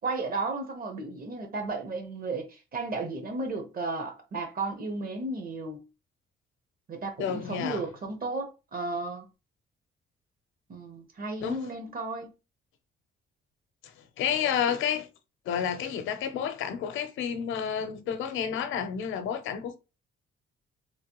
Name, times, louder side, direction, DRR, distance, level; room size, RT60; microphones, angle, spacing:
voice 1, 0.0-5.8 6.9-9.3 10.7-12.3, right 3 dB, 45° right, 1.0 m, -34 dB
voice 2, 7.2-7.8 11.4-11.7 13.8-13.9 14.2-15.1 15.5-19.8, left 8 dB, 80° left, 0.6 m, -30 dB
3.2 x 2.2 x 2.9 m
cardioid pair, 90°, 20 cm